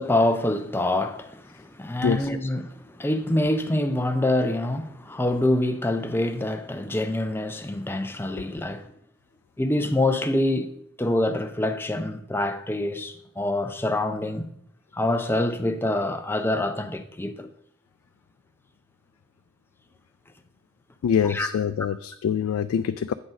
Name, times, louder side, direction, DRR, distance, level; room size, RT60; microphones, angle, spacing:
voice 1, 0.0-8.8 9.6-10.7 11.0-14.5 14.9-17.5 21.3-21.5, left 1 dB, 10° left, 0.5 m, -26 dB
voice 2, 21.0-23.1, left 7 dB, 90° left, 0.3 m, -25 dB
8.8 x 4.0 x 6.1 m
head